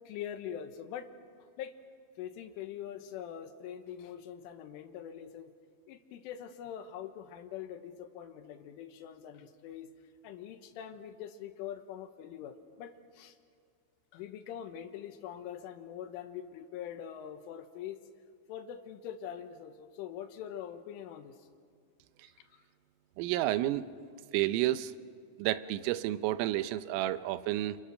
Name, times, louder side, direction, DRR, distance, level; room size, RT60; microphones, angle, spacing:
voice 1, 0.1-1.1 1.6-1.7 2.2-5.5 5.9-9.9 10.2-13.4 14.1-18.0 18.5-21.5 22.4-22.6, left 9 dB, 80° left, 9 dB, 3.7 m, -43 dB
voice 2, 23.2-23.9 24.3-24.9 25.4-27.8, right 14 dB, 90° right, 14 dB, 3.4 m, -30 dB
29.5 x 27.5 x 6.5 m, 2.2 s
omnidirectional pair, 5.7 m